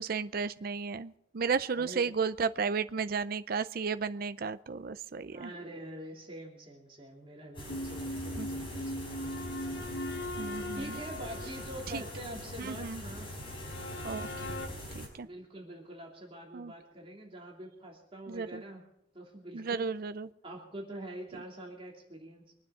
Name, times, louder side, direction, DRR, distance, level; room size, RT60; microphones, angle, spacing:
voice 1, 0.0-5.5 8.4-8.5 10.4-10.9 11.9-12.0 12.6-13.0 14.0-14.5 14.9-15.3 16.5-16.7 18.3-18.6 19.5-20.3, right 5 dB, 50° right, 13 dB, 0.5 m, -33 dB
voice 2, 1.7-2.2 5.3-9.4 10.7-13.3 15.2-18.8 19.1-19.9 20.4-22.5, right 1 dB, 30° right, 0 dB, 3.0 m, -45 dB
sound 1, 7.5-15.1, equal, 30° left, 5.2 m, -43 dB
sound 2, 7.7-14.7, left 1 dB, 70° left, 1.1 m, -40 dB
24.0 x 9.6 x 4.9 m, 0.80 s
head